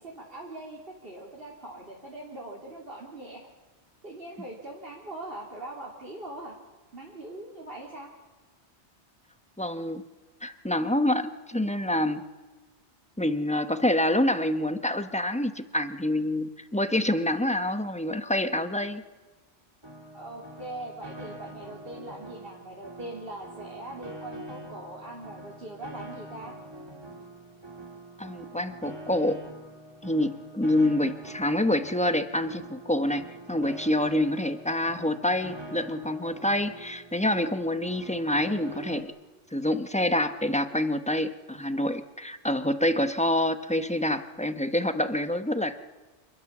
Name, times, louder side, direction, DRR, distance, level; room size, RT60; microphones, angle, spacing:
voice 1, 0.0-3.4 4.0-6.6 6.9-8.1 20.1-26.5, right 1 dB, 55° right, -2 dB, 3.6 m, -41 dB
voice 2, 9.6-10.0 10.4-12.2 13.2-19.0 28.2-29.4 30.0-39.1 39.5-45.9, left 1 dB, 5° left, 9 dB, 1.2 m, -27 dB
Piano, 19.8-39.0, right 1 dB, 20° right, 3.0 m, -44 dB
27.5 x 20.5 x 7.4 m, 1.3 s
omnidirectional pair, 1.2 m